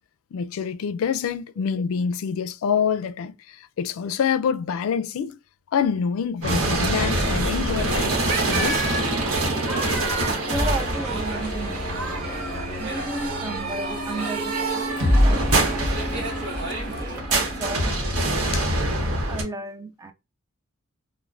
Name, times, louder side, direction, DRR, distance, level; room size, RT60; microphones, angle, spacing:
voice 1, 0.3-5.4 5.7-8.8 18.5-18.7, left 7 dB, 70° left, 0.3 m, -26 dB
sound 1, 6.4-19.4, right 1 dB, 80° right, 0.9 m, -25 dB
sound 2, 7.7-17.2, right 2 dB, 55° right, 0.8 m, -32 dB
sound 3, 9.0-18.2, left 1 dB, 30° left, 0.7 m, -37 dB
voice 2, 10.4-12.3 12.8-16.3 16.9-18.0 19.3-20.1, right 2 dB, 15° right, 0.3 m, -34 dB
2.5 x 2.1 x 3.1 m
head